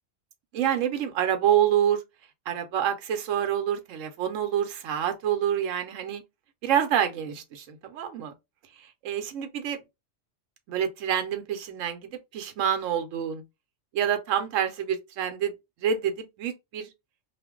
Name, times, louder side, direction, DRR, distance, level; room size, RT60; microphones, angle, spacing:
voice 1, 0.5-2.0 2.5-6.2 6.6-8.3 8.8-9.8 10.7-13.4 13.9-15.5 15.8-16.9, right 9 dB, 80° right, 1.0 m, -27 dB
2.4 x 2.0 x 3.5 m
omnidirectional pair, 1.3 m